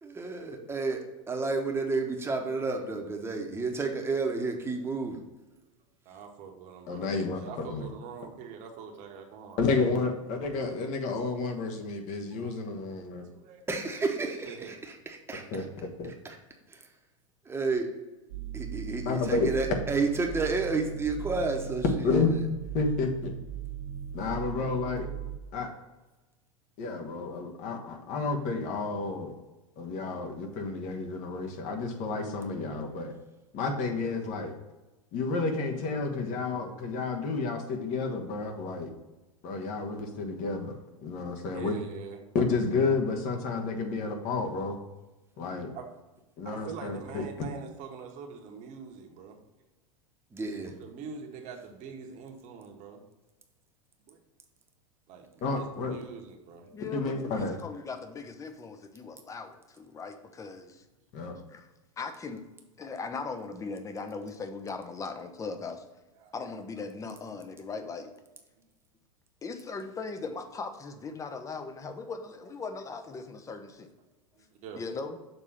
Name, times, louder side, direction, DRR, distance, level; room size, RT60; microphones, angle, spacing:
voice 1, 0.0-1.0 1.3-5.2 13.7-15.6 16.2-16.4 16.7-16.8 17.5-17.9 18.5-22.2 50.3-50.7, right 3 dB, 15° right, 2 dB, 1.1 m, -31 dB
voice 2, 6.0-9.6 12.3-12.5 12.9-13.0 13.2-13.6 14.5-14.7 41.4-42.2 44.2-44.3 45.3-45.9 46.4-49.4 50.8-53.0 54.0-54.2 55.1-56.7 66.2-66.3 67.2-67.6 68.5-68.7 74.3-74.8, right 6 dB, 45° right, 3 dB, 1.2 m, -44 dB
voice 3, 6.9-7.9 9.6-13.2 15.5-16.1 19.0-19.5 22.0-22.4 22.7-23.3 24.1-25.1 25.5-25.7 26.8-29.3 29.8-33.1 33.5-34.5 35.1-38.9 39.4-40.7 41.0-41.7 42.3-44.8 45.4-45.7 46.4-47.2 55.4-55.9 56.9-57.6 61.1-61.4, left 4 dB, 45° left, 3 dB, 1.3 m, -30 dB
sound 1, 18.3-25.4, right 9 dB, 70° right, 1.0 m, -38 dB
voice 4, 56.7-60.8 61.5-61.7 62.0-62.4 62.8-65.8 66.3-68.1 69.4-73.9 74.7-75.2, left 4 dB, 20° left, 8 dB, 0.7 m, -39 dB
6.8 x 3.6 x 5.7 m, 1.1 s
hypercardioid pair, 90°, 17 cm